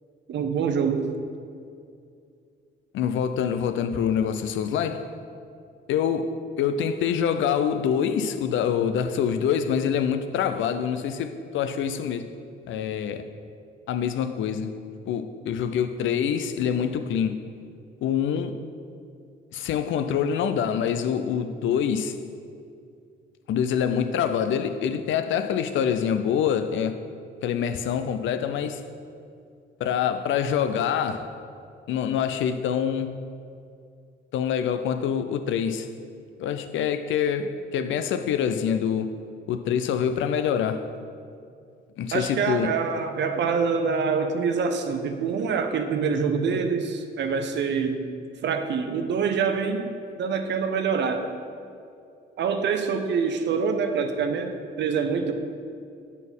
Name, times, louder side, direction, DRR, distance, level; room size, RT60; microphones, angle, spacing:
voice 1, 0.3-1.1 42.1-48.0 48.4-49.9 50.2-51.3 52.4-55.3, right 5 dB, 65° right, 0.7 m, -25 dB
voice 2, 2.9-5.1 5.9-12.3 12.7-13.3 13.9-14.8 15.1-17.4 18.0-18.6 19.5-22.2 23.5-27.0 27.4-28.8 29.8-31.4 31.9-33.1 34.3-35.9 36.4-39.1 39.5-40.9 42.0-42.7, left 8 dB, 75° left, 0.5 m, -25 dB
7.3 x 4.1 x 5.4 m
cardioid pair, 90°, 20 cm